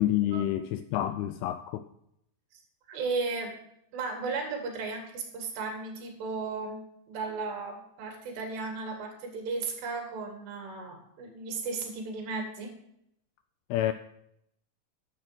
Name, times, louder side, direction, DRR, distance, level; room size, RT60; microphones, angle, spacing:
voice 1, 0.0-1.9 13.7-13.9, left 13 dB, 85° left, 10 dB, 2.3 m, -28 dB
voice 2, 2.9-3.6 3.9-6.8 7.1-12.7, right 4 dB, 75° right, 2 dB, 4.2 m, -35 dB
11.0 x 7.4 x 6.1 m, 0.76 s
omnidirectional pair, 4.9 m